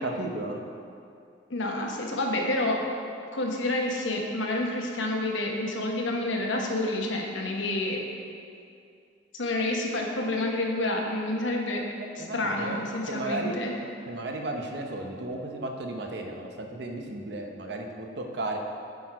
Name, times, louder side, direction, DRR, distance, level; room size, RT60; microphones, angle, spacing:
voice 1, 0.0-0.6 12.2-12.8 13.1-13.6 14.1-18.6, right 2 dB, 60° right, 2 dB, 0.7 m, -34 dB
voice 2, 1.5-2.8 3.3-8.0 9.3-11.8 12.1-13.8, left 1 dB, 80° left, 1 dB, 1.0 m, -29 dB
8.2 x 4.4 x 4.6 m, 2.4 s
head